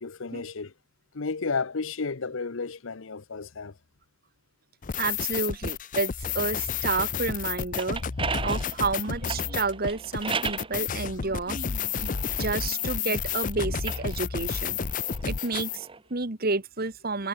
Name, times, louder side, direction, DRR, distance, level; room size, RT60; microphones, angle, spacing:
voice 1, 0.0-0.7 1.1-3.8, left 4 dB, 70° left, 0.8 m, -32 dB
sound 1, 4.8-15.8, left 7 dB, 40° left, 0.6 m, -31 dB
voice 2, 5.0-8.0 8.4-14.8 15.3-17.3, right 3 dB, 45° right, 1.7 m, -30 dB
sound 2, 7.5-10.7 11.5-13.2 13.7-16.0, right 5 dB, 25° right, 1.0 m, -36 dB
head